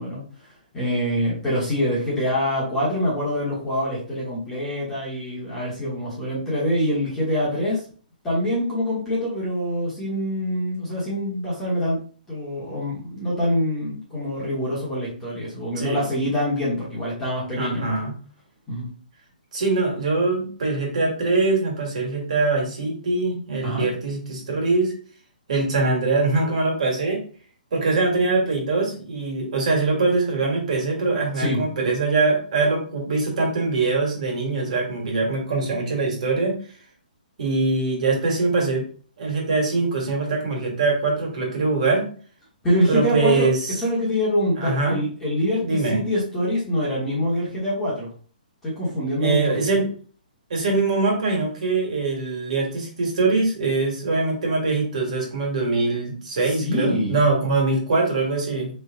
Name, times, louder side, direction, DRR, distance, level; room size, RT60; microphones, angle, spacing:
voice 1, 0.0-7.8 8.2-12.0 12.3-17.9 18.7-18.9 23.6-23.9 31.3-31.6 42.6-48.1 48.6-49.6 56.4-57.2, equal, 5° left, -7 dB, 1.2 m, -25 dB
voice 2, 17.6-18.1 19.5-24.9 25.5-27.2 27.7-36.6 37.4-38.8 39.2-42.1 42.9-43.8 44.6-45.0 45.6-46.0 49.2-49.9 50.5-58.7, right 3 dB, 50° right, 0 dB, 1.9 m, -23 dB
3.9 x 3.3 x 3.7 m, 0.42 s
hypercardioid pair, 175°, 5 cm